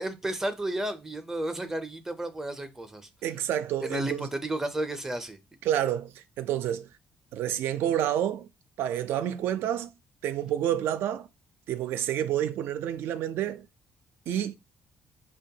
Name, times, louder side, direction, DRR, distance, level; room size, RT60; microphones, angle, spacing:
voice 1, 0.0-3.1 3.8-5.4, right 1 dB, 10° right, 0.4 m, -32 dB
voice 2, 3.2-4.3 5.6-6.9 7.3-8.5 8.8-9.9 10.2-11.3 11.7-13.7 14.3-14.6, right 11 dB, 80° right, 0.3 m, -29 dB
5.0 x 2.2 x 2.7 m
cardioid pair, 140°, 4 cm